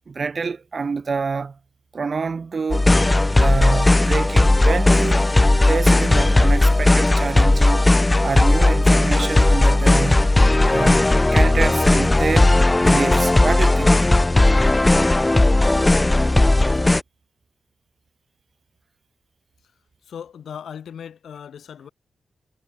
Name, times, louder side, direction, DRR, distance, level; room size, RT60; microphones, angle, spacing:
voice 1, 0.1-1.6 1.9-2.9 3.3-5.2 5.7-7.9 8.2-10.4 10.7-14.0, right 5 dB, 45° right, 1.2 m, -26 dB
sound 1, 2.7-17.0, left 2 dB, 15° left, 0.5 m, -16 dB
voice 2, 20.1-21.9, left 8 dB, 85° left, 6.1 m, -37 dB
wide cardioid pair, 115°, 0 cm